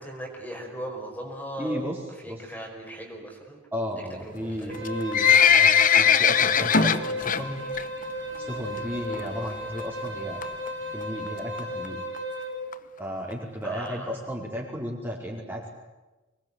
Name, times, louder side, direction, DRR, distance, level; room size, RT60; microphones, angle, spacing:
voice 1, 0.0-1.8 2.1-3.6 3.9-4.9 8.7-8.9 13.6-14.2, right 1 dB, 10° left, 1 dB, 5.0 m, -38 dB
voice 2, 1.6-2.0 2.3-2.4 3.7-7.6 8.4-10.4 10.9-12.0 13.0-15.7, equal, 10° right, -2 dB, 4.8 m, -34 dB
Livestock farm animals working animals, 4.7-7.4 7.8-8.0 8.4-8.5 9.1-9.2 9.5-9.6 9.8-9.9 10.4-10.7 11.3-11.4 11.6-11.7 11.8-11.9 12.2-12.3 12.7-12.8 13.3-13.4 13.9-14.0, left 8 dB, 45° left, 1.1 m, -19 dB
Wind instrument woodwind instrument, 4.7-12.5, equal, 75° right, 4.4 m, -35 dB
sound 1, 6.7-9.9, left 1 dB, 60° left, 2.5 m, -30 dB
26.0 x 21.0 x 9.8 m, 1.1 s
head